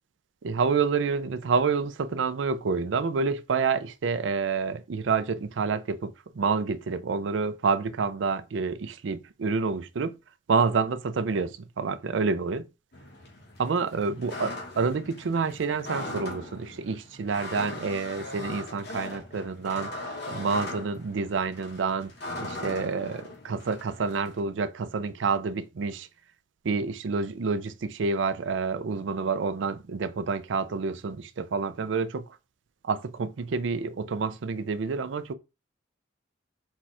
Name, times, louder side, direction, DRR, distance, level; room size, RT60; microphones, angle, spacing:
voice 1, 0.4-10.1 10.5-12.6 13.6-22.1 22.4-26.1 26.6-32.2 32.8-35.3, right 5 dB, 75° right, 0.4 m, -28 dB
sound 1, 12.9-24.4, left 2 dB, 55° left, 1.4 m, -40 dB
4.5 x 2.4 x 4.2 m
head